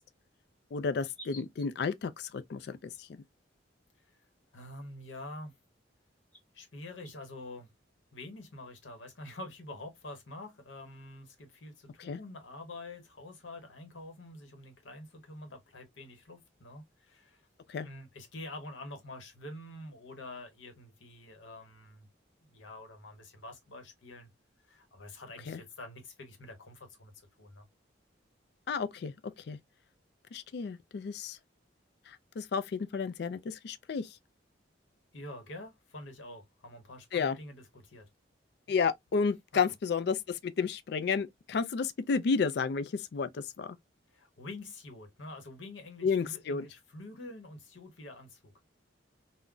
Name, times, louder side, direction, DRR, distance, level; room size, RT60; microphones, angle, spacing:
voice 1, 0.7-3.2 12.1-12.2 17.7-17.9 25.5-25.6 28.7-29.1 29.5-29.6 30.3-31.4 32.1-34.2 37.1-37.4 38.7-43.8 46.0-46.6, left 5 dB, 60° left, 0.3 m, -32 dB
sound 1, 1.0-1.8 2.9-3.0 4.2-4.3 4.5-4.6 5.6-5.7 6.3-6.4 7.0-7.1, equal, 5° left, 0.9 m, -51 dB
voice 2, 4.5-5.5 6.5-7.7 8.1-17.4 17.8-22.1 22.5-24.3 24.6-27.1 27.4-27.7 35.1-38.1 44.1-48.5, left 2 dB, 80° left, 0.9 m, -47 dB
3.7 x 2.1 x 2.2 m
head